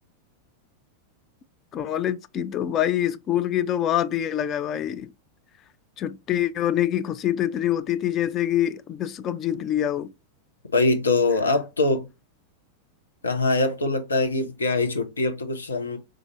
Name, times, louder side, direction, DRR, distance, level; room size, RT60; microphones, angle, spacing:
voice 1, 1.7-5.1 6.0-10.1, left 11 dB, 30° left, 0.3 m, -25 dB
voice 2, 10.7-12.1 13.2-16.0, left 3 dB, 75° left, 0.7 m, -23 dB
3.7 x 2.6 x 3.0 m
figure-of-eight pair, 90°, 0 cm